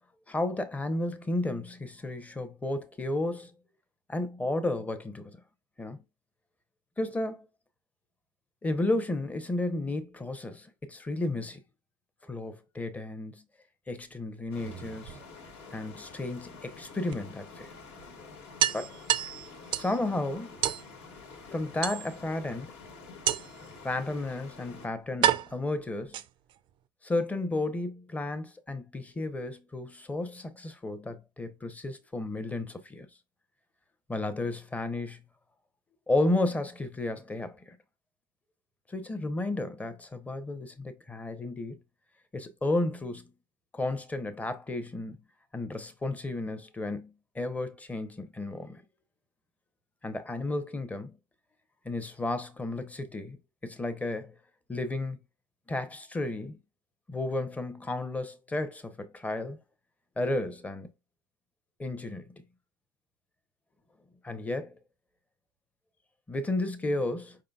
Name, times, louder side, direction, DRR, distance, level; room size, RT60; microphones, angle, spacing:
voice 1, 0.3-3.5 4.1-5.4 5.8-6.0 7.0-7.5 8.6-11.6 12.2-13.4 13.9-15.2 15.7-17.7 18.7-19.0 19.7-20.6 21.5-22.8 23.8-26.2 27.0-33.1 34.1-35.2 36.1-37.8 38.9-41.8 42.3-43.3 43.7-45.2 45.5-48.8 50.0-51.2 51.8-53.4 53.6-54.3 54.7-55.2 55.7-56.6 57.1-59.6 60.2-60.9 61.8-62.3 64.2-64.7 66.3-67.4, left 2 dB, 10° left, 0.8 m, -33 dB
sound 1, 14.5-24.9, left 4 dB, 55° left, 1.4 m, -48 dB
sound 2, 14.5-15.6 17.1-17.2 17.6-17.7 18.0-18.1 18.6-20.0 20.6-20.9 21.8-22.4 23.3-23.7 24.5-24.6 25.2-26.6, right 11 dB, 45° right, 0.4 m, -29 dB
5.0 x 3.8 x 2.3 m
hypercardioid pair, 90°, 12 cm